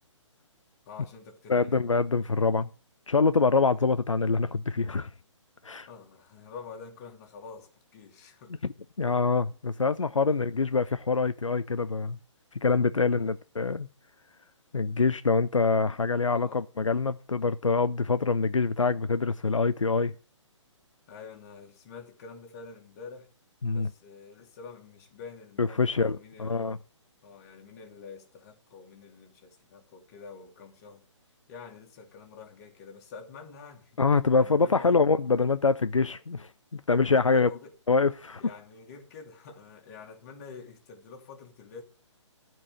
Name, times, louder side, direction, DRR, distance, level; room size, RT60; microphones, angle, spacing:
voice 1, 0.9-1.8 5.9-8.5 10.3-10.4 13.0-13.3 16.3-16.6 21.1-23.3 23.7-26.7 27.2-31.0 31.5-33.9 34.3-35.0 37.2-37.7 38.4-41.8, left 5 dB, 30° left, 2.1 m, -47 dB
voice 2, 1.5-2.7 3.1-5.1 5.6-5.9 8.6-8.7 9.0-12.2 12.5-13.9 14.7-20.1 23.6-23.9 25.6-26.8 34.0-37.5 37.9-38.4, left 4 dB, 80° left, 0.5 m, -25 dB
12.0 x 4.6 x 7.3 m
figure-of-eight pair, 135°, 16 cm